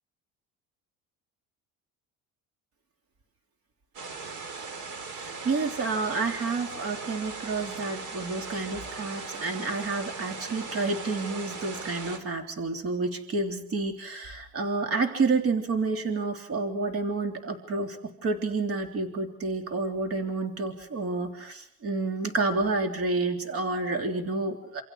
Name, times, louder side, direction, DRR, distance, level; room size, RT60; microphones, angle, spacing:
sound 1, 3.9-12.2, right 4 dB, 65° right, 4.2 m, -39 dB
voice 1, 5.2-18.0 18.2-24.8, right 3 dB, 40° right, 5 dB, 3.4 m, -29 dB
28.0 x 27.5 x 4.8 m, 0.63 s
cardioid pair, 130°, 34 cm